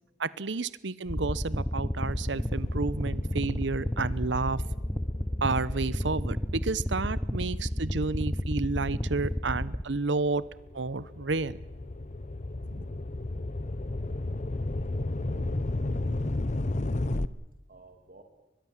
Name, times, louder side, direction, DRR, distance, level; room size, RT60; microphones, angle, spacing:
voice 1, 0.2-4.6 5.4-10.4 10.7-11.6 12.8-12.9, right 3 dB, 75° right, 19 dB, 0.9 m, -31 dB
sound 1, 1.1-9.8, equal, 10° left, 0.9 m, -31 dB
sound 2, 2.0-8.7 9.3-17.3, left 2 dB, 40° left, 0.8 m, -35 dB
voice 2, 15.1-16.3 17.7-18.2, right 2 dB, 50° right, 5 dB, 3.0 m, -53 dB
23.0 x 22.0 x 7.4 m, 0.99 s
head